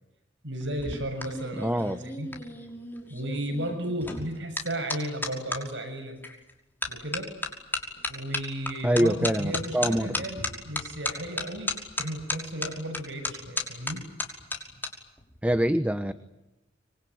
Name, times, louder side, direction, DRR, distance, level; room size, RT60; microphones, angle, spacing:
voice 1, 0.4-2.3 3.1-6.1 6.9-7.3 8.1-14.0, right 1 dB, 70° right, 6 dB, 7.0 m, -34 dB
sound 1, 0.6-5.6 6.2-6.5 6.8-14.9 15.2-15.6, left 2 dB, 10° left, 5.8 m, -34 dB
voice 2, 1.6-2.0 8.8-10.2 15.4-16.1, equal, 5° right, 11 dB, 1.0 m, -25 dB
26.5 x 24.0 x 9.4 m, 0.95 s
head